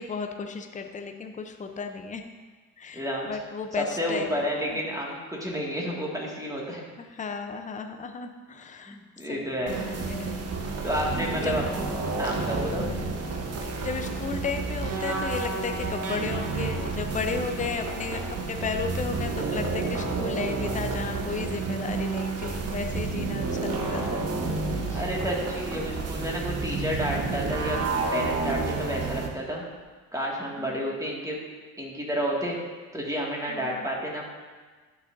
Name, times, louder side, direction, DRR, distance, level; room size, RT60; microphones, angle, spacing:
voice 1, 0.0-2.2 2.8-4.8 7.0-9.0 9.3-10.8 11.3-11.6 12.8-13.2 13.8-24.3 24.9-25.0 26.7-26.8 28.6-29.0 30.6-30.9 33.5-33.9, left 5 dB, 20° left, 6 dB, 0.8 m, -34 dB
voice 2, 2.9-3.3 3.8-6.8 8.9-9.8 10.8-11.6 12.2-12.9 24.9-27.8 28.1-29.6 30.1-31.4 31.8-32.6 32.9-34.2, equal, 10° right, -3 dB, 2.1 m, -30 dB
sound 1, 9.7-29.3, right 3 dB, 35° right, 1.2 m, -30 dB
11.5 x 6.3 x 2.7 m, 1.4 s
hypercardioid pair, 60°, 41 cm